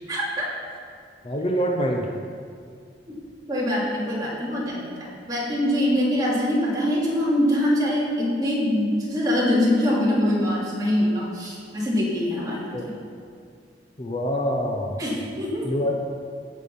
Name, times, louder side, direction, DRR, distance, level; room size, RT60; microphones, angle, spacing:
voice 1, 0.1-0.5 3.5-12.9 15.0-15.8, left 1 dB, 20° right, -6 dB, 3.0 m, -24 dB
voice 2, 1.2-2.1 12.7-12.8 14.0-15.0 15.6-15.9, equal, 30° left, 0 dB, 0.9 m, -25 dB
16.5 x 6.3 x 5.6 m, 2.2 s
head